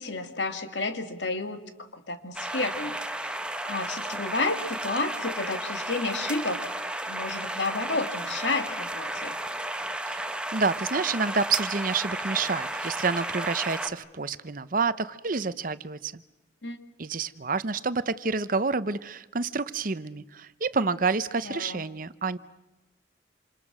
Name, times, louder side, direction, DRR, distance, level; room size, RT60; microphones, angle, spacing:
voice 1, 0.0-3.0 3.6-6.7 7.1-9.4 16.6-16.8 21.4-21.8, left 3 dB, 75° left, 7 dB, 2.4 m, -31 dB
sound 1, 2.3-13.9, right 1 dB, 5° right, 1.2 m, -33 dB
voice 2, 10.1-16.2 17.0-22.4, right 4 dB, 45° right, 15 dB, 0.8 m, -28 dB
27.5 x 27.5 x 6.1 m, 1.0 s
head